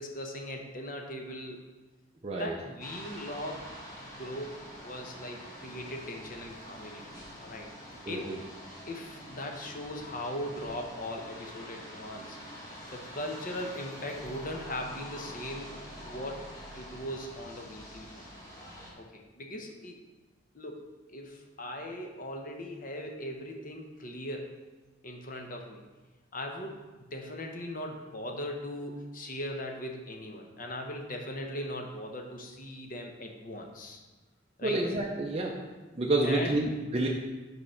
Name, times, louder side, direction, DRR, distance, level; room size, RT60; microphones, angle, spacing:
voice 1, 0.0-1.6 2.3-3.8 4.2-7.0 7.4-7.7 8.0-8.3 8.9-12.4 12.9-15.8 16.0-16.4 16.7-18.2 18.9-20.0 20.5-24.5 25.0-25.8 26.3-26.8 27.1-34.0 34.6-34.8 36.2-36.6, left 1 dB, 45° left, 2 dB, 0.8 m, -39 dB
voice 2, 2.2-2.5 8.1-8.4 34.6-35.5 36.0-37.1, right 2 dB, 30° right, -2 dB, 0.5 m, -29 dB
sound 1, 2.8-18.9, equal, 15° left, 1.2 m, -46 dB
5.4 x 4.7 x 5.6 m, 1.2 s
head